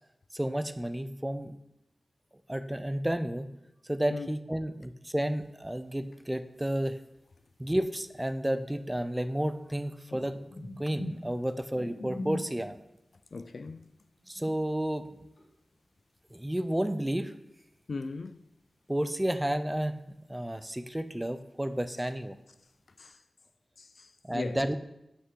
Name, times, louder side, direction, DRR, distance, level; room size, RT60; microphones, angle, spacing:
voice 1, 0.3-1.5 2.5-3.5 3.9-7.0 7.6-10.4 10.8-12.8 14.3-15.1 16.3-17.3 18.9-20.0 20.3-22.4 24.2-24.8, right 1 dB, 10° right, 0.4 m, -31 dB
sound 1, 5.3-6.1 6.4-17.1 17.4-19.0 19.2-23.1, left 1 dB, 75° left, 1.5 m, -45 dB
voice 2, 13.3-13.8 17.9-18.4 23.0-23.2 23.8-24.6, left 4 dB, 60° left, 0.4 m, -38 dB
8.3 x 5.7 x 3.8 m
wide cardioid pair, 115°, 0 cm